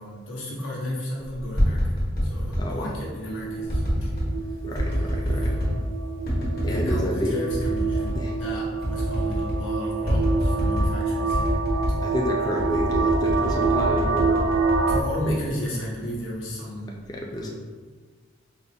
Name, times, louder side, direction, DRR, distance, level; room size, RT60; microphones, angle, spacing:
voice 1, 0.0-4.1 4.4-4.6 4.8-5.6 6.7-11.6 14.9-17.5, left 1 dB, 85° left, -4 dB, 1.0 m, -34 dB
sound 1, 1.3-2.7 3.7-4.3 4.8-5.8 6.3-7.0 7.5-8.2 8.5-8.6 8.8-9.6 10.1-11.0 11.3-12.0 12.6-15.7 16.1-16.5, equal, 50° left, 1.1 m, -25 dB
voice 2, 2.5-2.9 4.6-5.6 6.6-7.4 8.2-8.4 12.0-14.5 15.2-15.4 17.1-17.5, equal, 20° left, -1 dB, 0.3 m, -29 dB
sound 2, 3.0-15.0, right 4 dB, 80° right, 0.3 m, -27 dB
4.8 x 2.2 x 2.7 m, 1.4 s
head